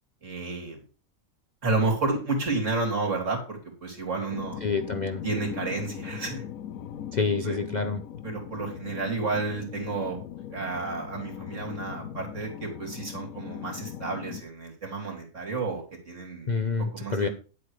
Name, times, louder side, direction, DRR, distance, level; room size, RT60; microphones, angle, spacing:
voice 1, 0.2-0.8 1.6-4.6 5.2-6.4 7.4-7.6 8.2-10.2 10.5-16.5 16.9-17.3, right 3 dB, 60° right, 0 dB, 3.4 m, -31 dB
sound 1, 4.3-14.4, left 10 dB, 85° left, 1.1 m, -39 dB
voice 2, 4.6-5.2 7.1-8.0 16.5-17.3, left 4 dB, 40° left, 6 dB, 0.7 m, -27 dB
10.0 x 8.0 x 4.8 m, 0.36 s
omnidirectional pair, 1.4 m